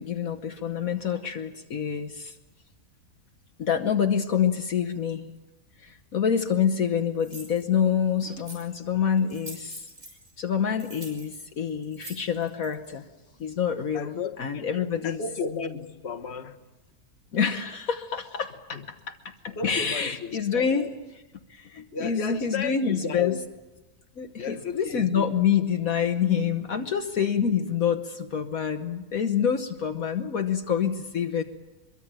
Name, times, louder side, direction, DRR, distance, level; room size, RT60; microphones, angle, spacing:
voice 1, 0.0-2.3 3.6-5.3 5.8-9.9 10.4-13.1 13.4-15.2 17.3-20.9 21.5-23.3 24.2-31.4, left 7 dB, 65° left, 1.5 m, -27 dB
sound 1, 6.3-6.4 7.2-7.6 8.2-8.8 9.2-10.3 10.7-12.9, right 2 dB, 65° right, 6.6 m, -44 dB
voice 2, 13.9-16.6 18.7-18.9 19.5-20.9 21.9-23.4 24.4-25.4, left 5 dB, 45° left, 1.7 m, -34 dB
24.5 x 23.0 x 8.9 m
omnidirectional pair, 1.6 m